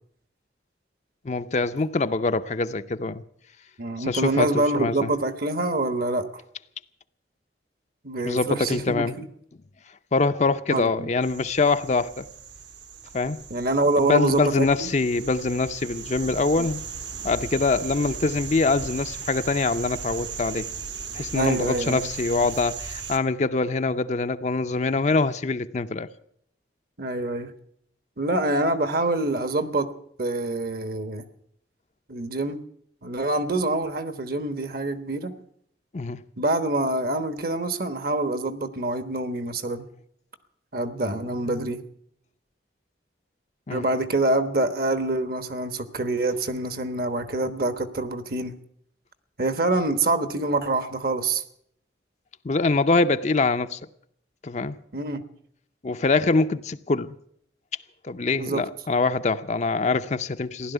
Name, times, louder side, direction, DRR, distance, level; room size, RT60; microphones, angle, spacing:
voice 1, 1.2-3.2 4.0-5.1 8.2-9.1 10.1-12.3 13.1-13.4 14.0-16.8 17.2-20.7 21.1-26.1 35.9-36.2 43.7-43.8 52.4-53.8 54.4-54.8 55.8-57.2 58.0-60.7, left 3 dB, 40° left, 0.5 m, -24 dB
voice 2, 3.8-6.3 8.0-9.2 10.7-11.1 13.5-14.9 16.6-16.7 21.3-22.1 27.0-27.5 28.2-29.9 30.2-31.3 32.1-32.6 33.0-35.3 36.4-39.9 40.7-41.8 43.7-48.5 49.4-51.4 54.9-55.2 58.4-58.6, right 2 dB, 55° right, 1.2 m, -26 dB
sound 1, 11.2-23.2, right 6 dB, 70° right, 1.5 m, -37 dB
16.0 x 11.5 x 8.0 m
head